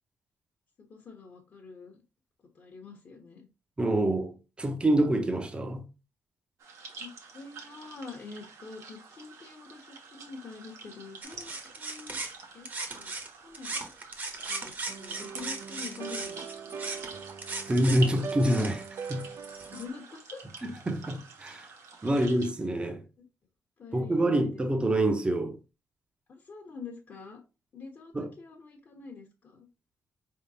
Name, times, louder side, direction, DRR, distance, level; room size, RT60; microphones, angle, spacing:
voice 1, 0.8-2.0 2.5-3.5 7.0-12.2 12.5-12.7 12.9-13.1 13.4-13.8 14.5-16.4 16.8-17.1 19.7-20.6 22.0-22.2 23.2-23.3 23.8-24.6 26.3-27.4 27.7-29.7, left 4 dB, 45° left, 1.0 m, -46 dB
voice 2, 3.8-5.8 17.7-19.3 20.6-21.7 22.0-23.0 23.9-25.6 28.1-28.3, right 1 dB, 20° right, 0.7 m, -27 dB
sound 1, 6.6-22.5, right 4 dB, 75° right, 1.1 m, -47 dB
sound 2, 11.2-13.3 13.5-19.8, right 3 dB, 35° right, 1.0 m, -38 dB
sound 3, 14.9-19.9, right 6 dB, 60° right, 0.4 m, -41 dB
4.5 x 3.6 x 2.8 m
cardioid pair, 115°, 5 cm